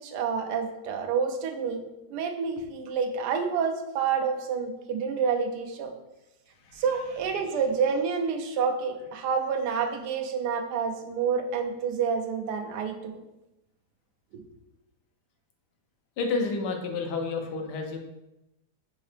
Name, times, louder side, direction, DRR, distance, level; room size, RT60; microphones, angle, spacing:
voice 1, 0.0-1.8 2.1-5.9 6.7-13.2 14.3-14.4, right 6 dB, 80° right, 4 dB, 1.2 m, -28 dB
voice 2, 16.2-18.0, left 4 dB, 85° left, 4 dB, 1.3 m, -30 dB
5.4 x 2.8 x 3.2 m, 0.93 s
omnidirectional pair, 1.8 m